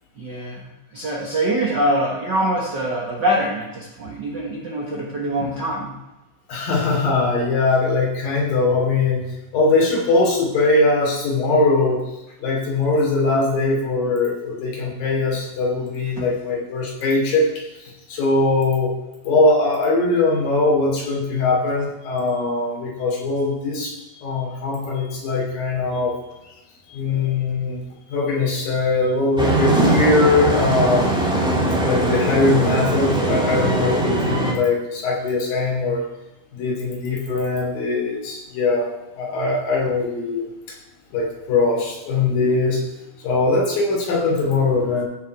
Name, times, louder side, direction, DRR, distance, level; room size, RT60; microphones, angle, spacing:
voice 1, 0.2-5.9 16.2-16.3, right 1 dB, 55° right, -1 dB, 1.2 m, -24 dB
voice 2, 6.5-9.3 9.5-12.0 12.4-17.5 17.8-18.9 19.2-26.1 26.9-27.8 28.1-31.1 31.5-36.0 36.5-40.8 41.1-42.8 43.2-45.0, left 3 dB, 80° left, -2 dB, 4.6 m, -21 dB
sound 1, 29.4-34.5, right 2 dB, 5° right, 0.8 m, -20 dB
15.0 x 6.7 x 4.7 m, 0.99 s
omnidirectional pair, 4.0 m